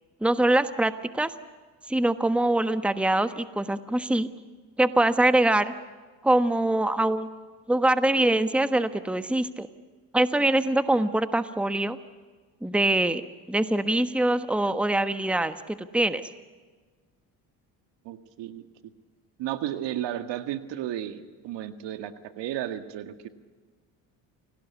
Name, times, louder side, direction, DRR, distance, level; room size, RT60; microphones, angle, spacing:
voice 1, 0.2-1.3 1.9-4.3 4.8-5.7 6.2-7.3 7.7-9.7 10.1-12.0 12.6-13.2 13.5-16.3, right 1 dB, 5° right, 10 dB, 1.3 m, -23 dB
voice 2, 18.0-18.9 19.4-23.3, right 11 dB, 70° right, 9 dB, 1.9 m, -33 dB
29.0 x 18.0 x 8.3 m, 1.4 s
supercardioid pair, 70°, 45 cm